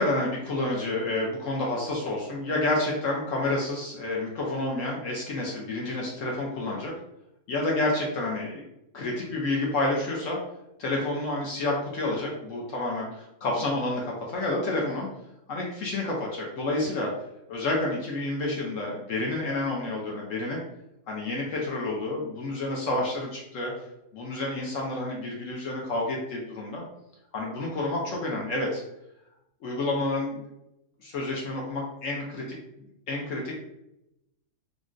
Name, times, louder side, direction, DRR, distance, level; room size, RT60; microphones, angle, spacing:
voice 1, 0.0-6.9 7.5-8.6 8.9-10.4 10.8-15.1 15.5-17.1 17.5-20.6 21.1-23.7 24.1-26.8 27.3-28.8 29.6-30.4 31.0-32.4 33.1-33.5, left 2 dB, 65° left, -2 dB, 0.9 m, -29 dB
3.7 x 2.1 x 2.4 m, 0.85 s
omnidirectional pair, 1.7 m